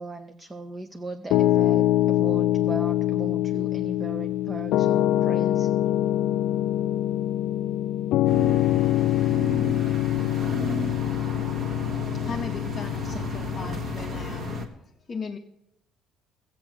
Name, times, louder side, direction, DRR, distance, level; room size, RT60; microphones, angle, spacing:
voice 1, 0.0-5.7, right 2 dB, 15° right, 9 dB, 0.5 m, -38 dB
Piano, 1.3-14.7, left 14 dB, 75° left, 0.4 m, -24 dB
sound 1, 8.2-14.7, right 2 dB, 35° right, 1.5 m, -34 dB
voice 2, 12.1-14.7 15.1-15.4, left 5 dB, 25° left, 2 dB, 0.7 m, -37 dB
13.5 x 8.4 x 6.7 m, 0.81 s
cardioid pair, 150°, 0 cm